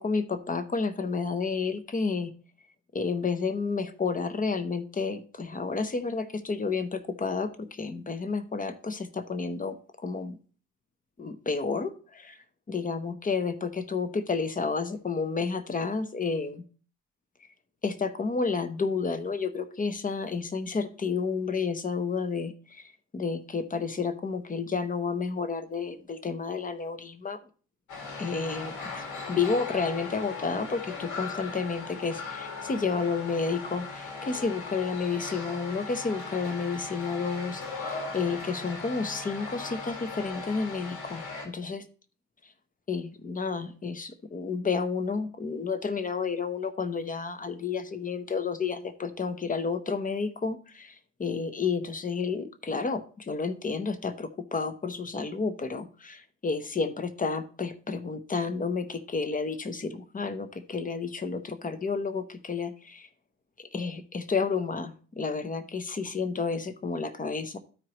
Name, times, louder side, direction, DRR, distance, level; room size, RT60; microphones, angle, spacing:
voice 1, 0.0-2.3 2.9-9.8 10.0-10.4 11.2-12.3 12.7-16.6 17.8-22.8 23.1-27.4 28.2-41.8 42.9-50.9 51.2-63.1 63.6-67.6, left 4 dB, 25° left, 10 dB, 0.8 m, -31 dB
sound 1, 27.9-41.5, left 4 dB, 75° left, 2.1 m, -38 dB
13.0 x 4.7 x 3.0 m, 0.39 s
cardioid pair, 90°, 30 cm